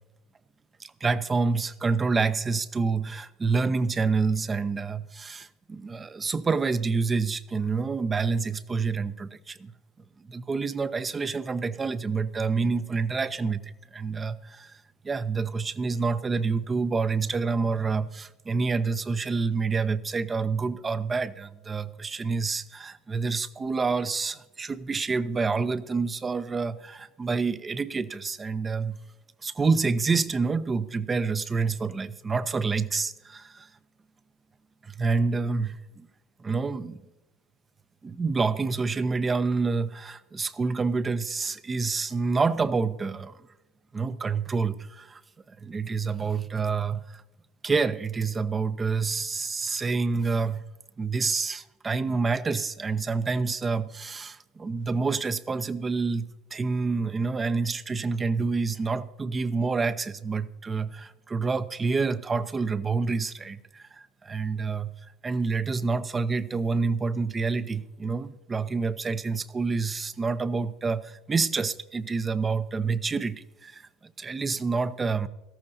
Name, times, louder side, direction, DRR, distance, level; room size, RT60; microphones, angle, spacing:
voice 1, 0.8-9.7 10.2-29.0 29.4-33.7 34.8-36.1 36.4-37.0 38.0-43.5 43.9-45.2 45.5-47.2 47.6-50.7 51.0-64.9 65.2-75.3, right 4 dB, 25° right, 15 dB, 0.6 m, -28 dB
17.5 x 13.5 x 2.7 m, 1.0 s
supercardioid pair, 100°, 0 cm